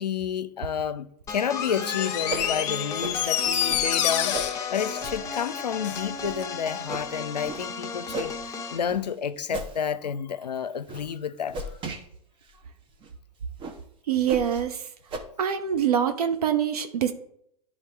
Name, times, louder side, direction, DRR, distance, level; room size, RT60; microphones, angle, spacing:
voice 1, 0.0-11.6, left 7 dB, 85° left, 0.5 m, -30 dB
sound 1, 1.3-8.9, left 4 dB, 15° left, 0.9 m, -35 dB
Door, 1.5-6.1 6.4-6.5, left 10 dB, 50° left, 0.7 m, -28 dB
sound 2, 2.3-2.5 3.0-3.2 3.7-3.9 4.3-4.5 5.0-5.2 5.7-5.8 6.2-6.4 6.9-7.1 7.4-7.6 8.1-8.4 8.9-9.1 9.5-9.8 10.2-10.4 10.9-11.0 11.5-12.0 12.5-12.6 13.0-13.1 13.6-13.8 14.3-14.6 15.1-15.2, right 2 dB, 25° right, 0.8 m, -35 dB
voice 2, 14.1-14.8 15.4-17.1, right 9 dB, 70° right, 0.8 m, -24 dB
10.5 x 3.6 x 3.3 m
figure-of-eight pair, 105°, 20 cm